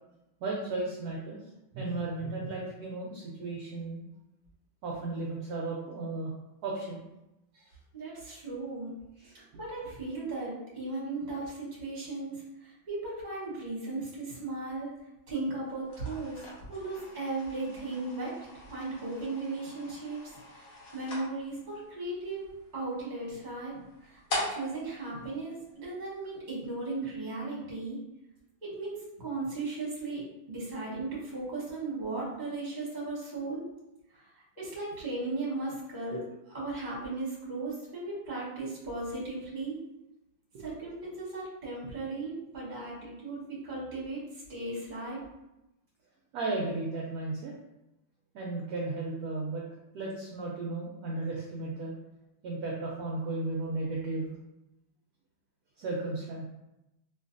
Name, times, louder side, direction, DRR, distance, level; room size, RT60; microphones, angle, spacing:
voice 1, 0.4-1.4 1.7-4.0 4.8-6.3 6.6-7.0 7.5-7.7 9.2-9.3 40.5-40.6 46.3-47.5 48.3-49.6 49.9-51.9 52.4-54.4 55.8-56.5, right 2 dB, 70° right, -2 dB, 0.9 m, -34 dB
voice 2, 7.9-8.9 9.3-14.9 15.3-18.3 18.7-22.5 22.7-23.8 24.1-28.0 28.6-33.6 34.6-36.2 36.5-39.8 40.6-44.2 44.5-45.2, right 2 dB, 30° right, -6 dB, 0.9 m, -36 dB
sound 1, 15.8-26.2, left 2 dB, 70° left, 1.7 m, -43 dB
3.2 x 2.7 x 2.5 m, 0.92 s
omnidirectional pair, 2.1 m